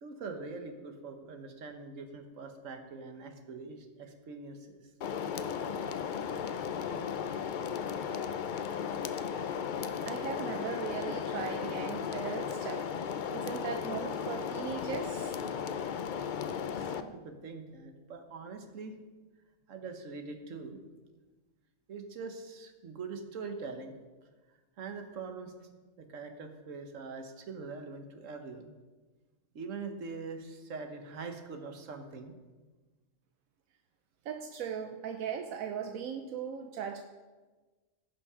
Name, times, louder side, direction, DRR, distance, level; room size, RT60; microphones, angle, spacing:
voice 1, 0.0-4.8 16.8-19.0 19.7-20.8 21.9-23.9 24.8-25.7 26.0-28.7 29.5-32.3, right 4 dB, 70° right, 5 dB, 1.5 m, -43 dB
sound 1, 5.0-17.0, left 7 dB, 60° left, 0.5 m, -35 dB
voice 2, 10.0-12.9 13.3-15.3 34.2-37.0, right 7 dB, 85° right, 6 dB, 1.1 m, -38 dB
16.0 x 6.0 x 4.9 m, 1.3 s
omnidirectional pair, 1.4 m